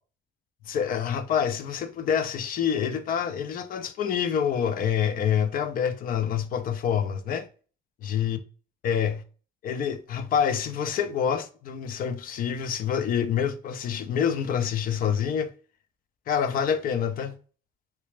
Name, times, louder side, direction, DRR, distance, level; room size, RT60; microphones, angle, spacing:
voice 1, 0.7-7.5 8.0-8.4 8.8-9.2 9.6-15.5 16.3-17.3, left 8 dB, 55° left, 0.6 m, -27 dB
3.3 x 2.9 x 3.1 m
cardioid pair, 110°, 17 cm